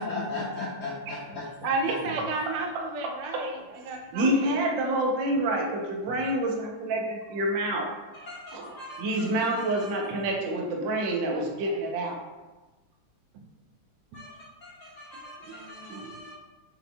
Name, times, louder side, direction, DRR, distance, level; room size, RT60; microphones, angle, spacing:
voice 1, 0.0-1.5 8.1-10.1 14.1-16.4, left 2 dB, 65° left, -6 dB, 1.1 m, -38 dB
voice 2, 1.6-4.8 11.3-11.8 15.5-16.2, right 3 dB, 90° right, 2 dB, 1.5 m, -33 dB
voice 3, 3.8-7.9 8.5-8.6 9.0-12.2, right 1 dB, 70° right, 0 dB, 1.3 m, -27 dB
5.6 x 3.9 x 2.2 m, 1.2 s
omnidirectional pair, 2.3 m